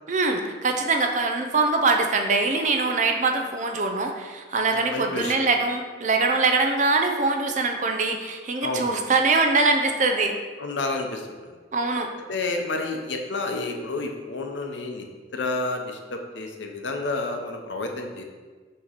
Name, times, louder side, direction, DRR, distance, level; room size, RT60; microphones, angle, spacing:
voice 1, 0.1-10.4 11.7-12.1, right 3 dB, 40° right, 4 dB, 0.5 m, -23 dB
voice 2, 4.7-5.3 8.6-8.9 10.6-11.5 12.3-15.1 15.3-18.2, left 3 dB, 75° left, 3 dB, 0.7 m, -30 dB
6.1 x 3.0 x 5.7 m, 1.4 s
head